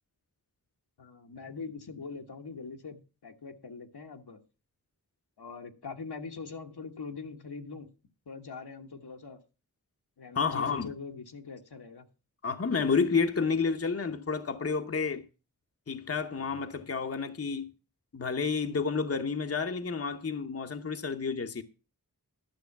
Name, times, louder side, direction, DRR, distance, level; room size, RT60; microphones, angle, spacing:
voice 1, 1.0-4.4 5.4-7.9 8.3-9.4 10.2-12.1, left 4 dB, 80° left, 1.4 m, -43 dB
voice 2, 10.3-10.9 12.4-15.2 15.9-17.7 18.1-21.6, left 5 dB, 40° left, 0.8 m, -30 dB
11.5 x 6.4 x 5.8 m
wide cardioid pair, 65°, 39 cm